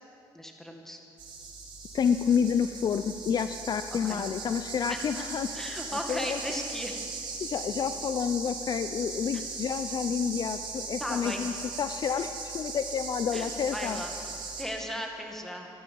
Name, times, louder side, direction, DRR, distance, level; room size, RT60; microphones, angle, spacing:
voice 1, 0.3-1.0 3.9-4.3 4.9-5.3 5.5-7.0 9.3-9.4 11.0-11.5 13.3-14.1 14.6-15.7, equal, 5° left, 2 dB, 2.0 m, -37 dB
sound 1, 1.2-14.6, right 4 dB, 60° right, 3.2 m, -39 dB
voice 2, 1.9-5.8 6.1-6.4 7.4-14.0, left 7 dB, 50° left, 10 dB, 0.5 m, -29 dB
13.5 x 12.0 x 7.0 m, 2.6 s
cardioid pair, 90°, 9 cm